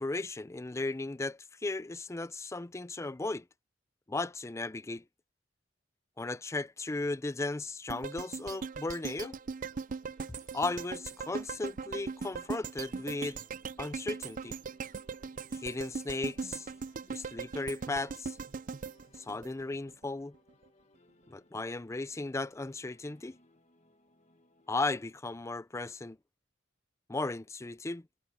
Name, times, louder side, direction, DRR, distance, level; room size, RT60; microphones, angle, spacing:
voice 1, 0.0-3.5 4.1-5.0 6.2-9.4 10.3-13.4 13.8-14.6 15.6-16.7 17.1-18.4 19.2-20.3 21.3-23.4 24.7-26.2 27.1-28.1, left 2 dB, 15° left, 0.4 m, -36 dB
sound 1, 7.9-20.1 20.5-20.6, right 5 dB, 45° right, 0.5 m, -40 dB
sound 2, 8.4-25.6, left 2 dB, 35° left, 1.7 m, -67 dB
head